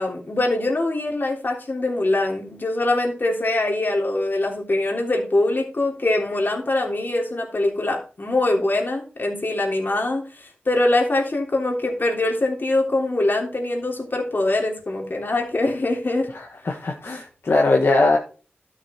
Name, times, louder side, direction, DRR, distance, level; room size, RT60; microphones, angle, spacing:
voice 1, 0.0-16.3, left 2 dB, 55° left, 1 dB, 3.3 m, -23 dB
voice 2, 16.3-18.2, left 2 dB, 75° left, 0 dB, 1.5 m, -20 dB
12.0 x 6.7 x 4.4 m, 0.35 s
wide cardioid pair, 70°, 4 cm